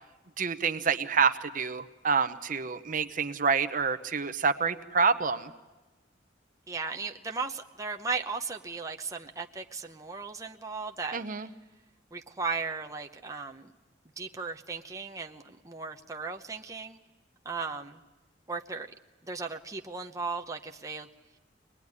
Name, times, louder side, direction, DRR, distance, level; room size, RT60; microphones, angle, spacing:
voice 1, 0.4-5.5 11.1-11.5, right 5 dB, 45° right, 9 dB, 0.8 m, -27 dB
voice 2, 6.7-11.2 12.1-13.7 14.2-17.0 17.4-18.0 18.5-18.9 19.2-21.1, right 4 dB, 20° right, 2 dB, 0.8 m, -36 dB
24.0 x 20.0 x 9.7 m, 1.1 s
head